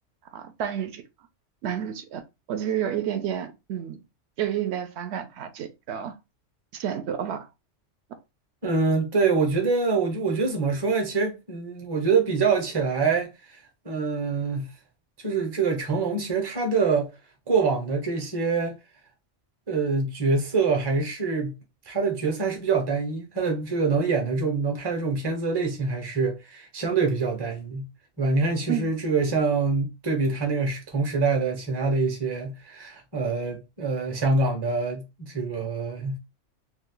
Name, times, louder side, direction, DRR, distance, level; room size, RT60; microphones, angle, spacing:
voice 1, 0.3-1.0 1.6-2.2 2.5-4.0 4.4-6.2 6.7-7.5 28.7-28.9, right 9 dB, 70° right, 0.8 m, -30 dB
voice 2, 8.6-13.3 13.8-14.7 15.2-17.1 17.5-18.8 19.7-21.5 21.9-27.9 28.2-36.2, right 4 dB, 25° right, 0.7 m, -25 dB
2.7 x 2.3 x 3.6 m
omnidirectional pair, 1.3 m